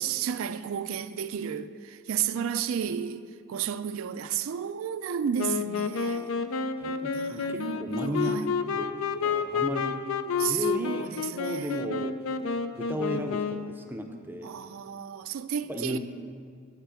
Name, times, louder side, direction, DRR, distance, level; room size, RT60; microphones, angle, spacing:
voice 1, 0.0-6.4 7.1-8.5 10.4-11.8 14.4-16.0, right 8 dB, 85° right, 0.4 m, -32 dB
Wind instrument woodwind instrument, 5.4-13.8, left 5 dB, 85° left, 0.5 m, -30 dB
voice 2, 6.8-8.4 8.8-10.0 10.4-12.2 12.8-14.5 15.7-16.0, equal, 10° right, 0.5 m, -35 dB
8.9 x 5.8 x 8.2 m
head